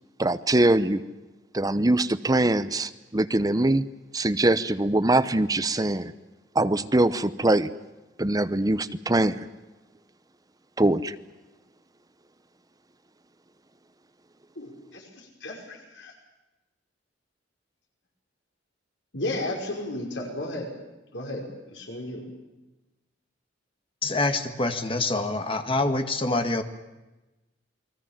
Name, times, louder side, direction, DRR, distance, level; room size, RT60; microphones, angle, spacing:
voice 1, 0.2-1.0 1.5-3.9 4.1-6.1 6.5-7.7 8.2-9.4 10.8-11.1, right 1 dB, 20° right, 12 dB, 0.9 m, -22 dB
voice 2, 14.6-16.1 19.1-20.7 21.1-22.2, left 1 dB, 70° left, 1 dB, 5.4 m, -34 dB
voice 3, 24.0-26.6, left 2 dB, 30° left, 7 dB, 1.9 m, -26 dB
29.0 x 21.5 x 7.5 m, 1.1 s
head